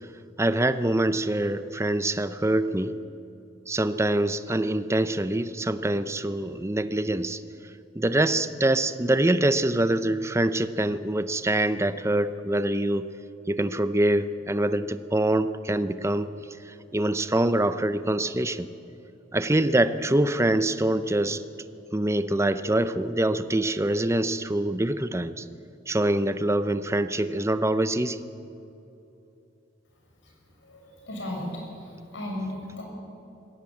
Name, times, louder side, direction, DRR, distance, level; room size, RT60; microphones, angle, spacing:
voice 1, 0.4-3.0 3.7-7.4 8.0-13.1 13.5-16.3 16.9-18.7 19.3-21.4 21.9-25.4 25.9-28.2, right 1 dB, 15° right, 12 dB, 0.6 m, -24 dB
voice 2, 30.6-32.8, left 1 dB, 90° left, 0 dB, 6.5 m, -36 dB
19.5 x 16.5 x 8.7 m, 2.8 s
head